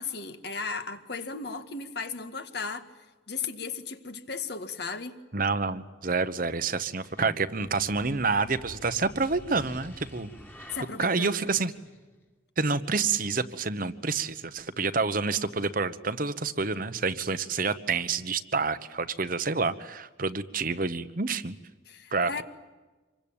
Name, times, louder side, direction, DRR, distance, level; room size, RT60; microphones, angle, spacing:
voice 1, 0.0-2.9 3.3-5.2 10.7-11.3 21.9-22.4, left 4 dB, 55° left, 1.9 m, -35 dB
voice 2, 5.3-10.3 11.0-11.7 12.6-21.6 22.1-22.4, right 4 dB, 45° right, 1.1 m, -28 dB
sound 1, 6.9-12.2, equal, 10° left, 2.2 m, -48 dB
26.5 x 23.0 x 8.7 m
head